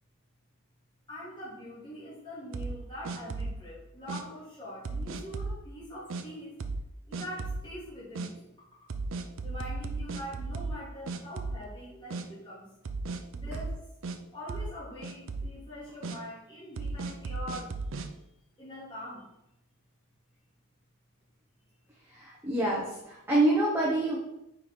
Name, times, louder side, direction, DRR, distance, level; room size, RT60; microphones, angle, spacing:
voice 1, 1.1-6.6 7.1-8.5 9.4-12.7 13.3-13.8 14.3-17.9 18.6-19.3, equal, 20° left, -9 dB, 2.3 m, -43 dB
sound 1, 2.5-3.6 4.1-4.2 4.8-5.6 6.1-6.2 6.6-6.9 7.1-7.7 8.1-8.3 8.9-10.8 11.1-11.8 12.1-12.2 12.8-14.2 14.5-14.8 15.0-15.5 16.0-16.2 16.8-18.1, right 3 dB, 60° right, 0.5 m, -35 dB
voice 2, 22.1-24.2, right 1 dB, 10° right, -5 dB, 1.0 m, -26 dB
4.8 x 4.5 x 5.1 m, 0.86 s
head